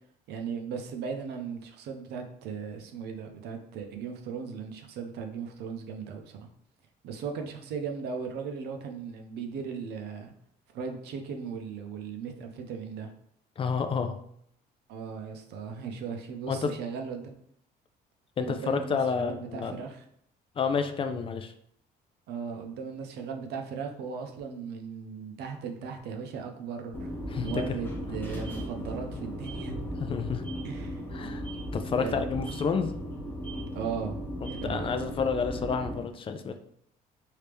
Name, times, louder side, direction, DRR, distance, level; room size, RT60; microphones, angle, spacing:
voice 1, 0.3-6.5 7.0-10.3 10.7-13.1 14.9-17.3 18.4-20.1 22.3-27.1 27.4-29.7 30.6-31.0 32.0-32.3 33.7-35.0, right 6 dB, 75° right, 4 dB, 0.6 m, -37 dB
voice 2, 13.6-14.2 16.5-16.7 18.4-19.8 20.6-21.5 27.3-27.6 30.0-30.5 31.1-31.4 31.7-32.9 34.6-36.6, left 5 dB, 30° left, 7 dB, 0.4 m, -29 dB
sound 1, 26.9-36.0, equal, 10° left, 0.7 m, -36 dB
3.3 x 2.8 x 3.4 m, 0.68 s
cardioid pair, 110°, 17 cm